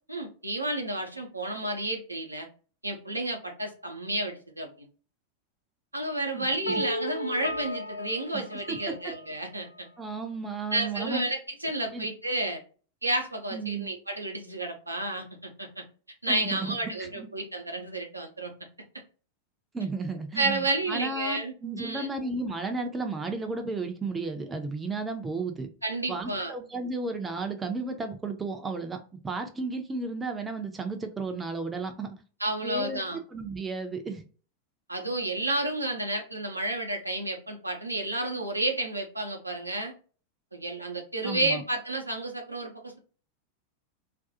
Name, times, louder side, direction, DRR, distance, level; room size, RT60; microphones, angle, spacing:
voice 1, 0.1-2.5 2.8-4.9 5.9-9.9 10.7-12.6 13.0-15.8 16.2-18.5 20.4-22.1 25.8-26.5 32.4-33.2 34.9-39.9 40.5-43.0, right 2 dB, 85° right, 3 dB, 0.6 m, -31 dB
sound 1, 6.7-9.6, left 2 dB, 75° left, 0.3 m, -35 dB
voice 2, 10.0-11.2 11.9-12.1 13.5-13.9 16.3-17.3 19.7-25.7 26.1-29.0 29.2-32.1 32.6-33.0 33.3-34.2 41.2-41.6, right 3 dB, 15° right, 5 dB, 0.5 m, -33 dB
2.5 x 2.3 x 2.6 m, 0.37 s
figure-of-eight pair, 90°, 0 cm